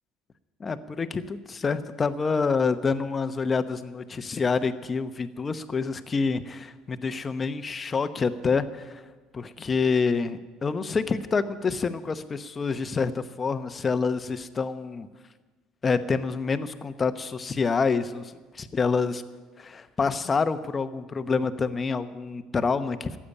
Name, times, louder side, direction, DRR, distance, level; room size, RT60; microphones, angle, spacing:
voice 1, 0.6-9.0 9.3-15.1 15.8-19.2 19.6-23.2, left 4 dB, 30° left, 10 dB, 0.9 m, -27 dB
13.0 x 8.7 x 9.8 m, 1.3 s
supercardioid pair, 80°, 0 cm